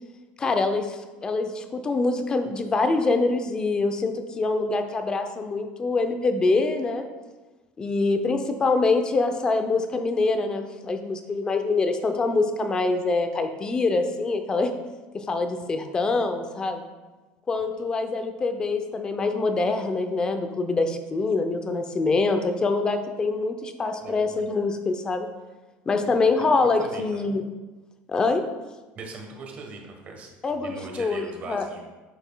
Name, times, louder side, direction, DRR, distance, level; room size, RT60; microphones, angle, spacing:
voice 1, 0.4-7.1 7.8-14.7 15.1-16.9 17.5-25.3 25.9-27.4 28.1-28.4 30.4-31.7, left 3 dB, 20° left, 7 dB, 0.5 m, -25 dB
voice 2, 24.0-24.4 26.1-27.0 28.9-31.8, right 3 dB, 35° right, 2 dB, 1.2 m, -40 dB
9.0 x 5.9 x 2.3 m, 1.2 s
cardioid pair, 150°, 4 cm